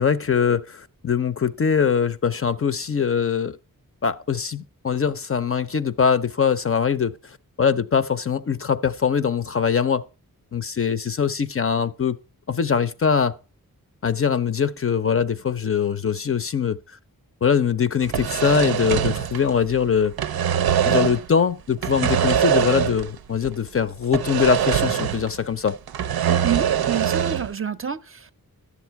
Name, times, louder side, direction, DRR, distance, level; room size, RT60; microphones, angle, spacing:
voice 1, 0.0-3.6 4.0-10.0 10.5-12.2 12.5-13.3 14.0-16.8 17.4-20.2 20.8-25.8, left 7 dB, 40° left, 0.5 m, -22 dB
sound 1, 18.0-19.8 20.1-21.3 21.8-23.2 23.4-23.6 24.1-25.4 25.7-27.5, right 9 dB, 90° right, 0.5 m, -23 dB
voice 2, 26.4-28.3, right 8 dB, 35° right, 0.5 m, -28 dB
11.0 x 7.2 x 4.5 m
wide cardioid pair, 75°, 36 cm